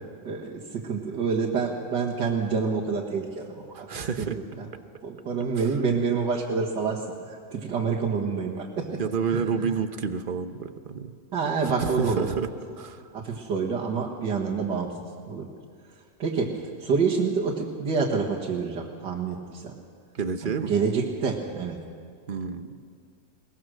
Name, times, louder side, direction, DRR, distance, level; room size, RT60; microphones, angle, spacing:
voice 1, 0.2-4.7 5.0-9.0 9.3-9.8 11.3-12.3 13.1-14.9 15.3-15.5 16.2-19.7 20.4-21.8, right 5 dB, 85° right, -4 dB, 2.3 m, -28 dB
voice 2, 3.7-4.4 9.0-11.1 11.8-12.5 12.8-13.0 20.1-20.7 22.3-22.7, right 6 dB, 40° right, 9 dB, 0.8 m, -29 dB
22.0 x 19.5 x 6.4 m, 2.2 s
omnidirectional pair, 1.8 m